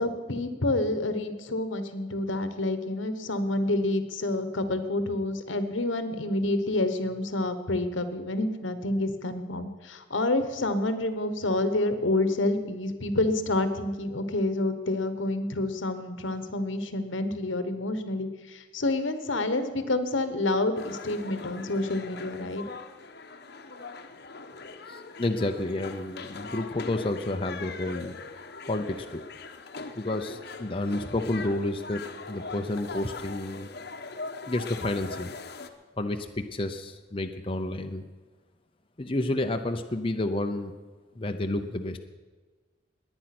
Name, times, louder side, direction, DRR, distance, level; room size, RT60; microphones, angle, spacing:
voice 1, 0.0-22.6, left 2 dB, 85° left, 10 dB, 1.3 m, -28 dB
sound 1, 20.8-35.7, left 4 dB, 60° left, 1.1 m, -41 dB
voice 2, 24.9-28.1 28.7-29.2 30.0-32.0 32.3-33.7 34.5-35.3 36.0-38.0 39.0-40.7 41.2-42.0, left 2 dB, 30° left, 5 dB, 0.7 m, -30 dB
21.0 x 9.1 x 6.1 m, 1.4 s
head